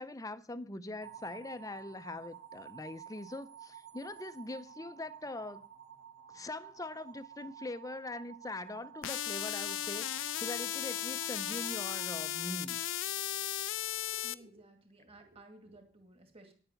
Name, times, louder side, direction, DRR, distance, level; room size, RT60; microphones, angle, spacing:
voice 1, 0.0-5.7 6.3-12.8, left 2 dB, 15° left, 0.6 m, -42 dB
sound 1, 1.0-13.2, right 9 dB, 65° right, 1.5 m, -52 dB
sound 2, 9.0-14.3, left 13 dB, 70° left, 0.5 m, -36 dB
voice 2, 14.2-16.5, right 2 dB, 30° right, 2.2 m, -56 dB
10.0 x 8.9 x 5.9 m
head